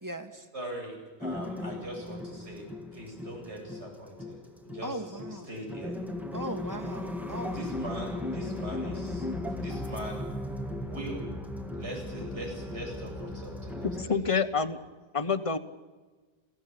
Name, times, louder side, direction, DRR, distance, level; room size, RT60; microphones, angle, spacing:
voice 1, 0.0-0.5 4.8-5.5 6.3-7.6, right 1 dB, 15° right, 6 dB, 2.0 m, -38 dB
voice 2, 0.5-2.7 2.9-6.0 7.4-9.2 9.5-10.2 10.9-11.2 11.7-14.2, right 1 dB, 80° right, 0 dB, 8.2 m, -41 dB
sound 1, 1.2-14.0, left 2 dB, ahead, 1.7 m, -37 dB
voice 3, 14.0-14.8 15.1-15.6, left 5 dB, 30° left, 10 dB, 1.2 m, -27 dB
28.5 x 17.0 x 8.6 m, 1.4 s
omnidirectional pair, 1.1 m